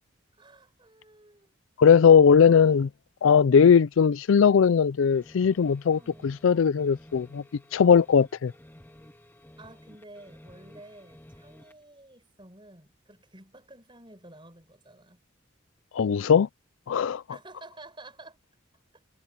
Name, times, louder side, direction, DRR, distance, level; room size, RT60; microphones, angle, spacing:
voice 1, 0.3-1.5 2.5-2.9 5.9-6.3 9.6-15.2 17.3-18.4 18.9-19.0, right 2 dB, 25° right, 6.6 m, -51 dB
voice 2, 1.8-2.9 3.2-7.4 7.7-8.5 15.9-16.5 16.9-17.2, left 6 dB, 80° left, 0.4 m, -19 dB
sound 1, 5.1-11.8, left 1 dB, 10° left, 2.4 m, -53 dB
head